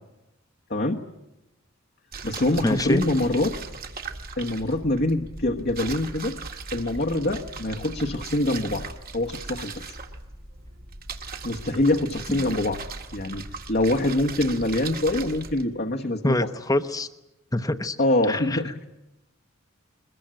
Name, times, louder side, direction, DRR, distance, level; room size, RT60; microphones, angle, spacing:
voice 1, 0.7-1.0 2.2-3.6 4.4-6.4 6.7-8.9 9.1-9.8 11.4-12.8 13.1-16.5 18.0-18.8, left 1 dB, 45° left, 2 dB, 1.3 m, -25 dB
sound 1, 2.1-15.6, right 4 dB, 45° right, 1.9 m, -38 dB
voice 2, 2.6-3.0 12.4-12.5 16.2-17.1 17.5-18.0 18.2-18.6, left 1 dB, 15° left, 10 dB, 1.0 m, -25 dB
22.5 x 22.0 x 9.0 m, 0.95 s
head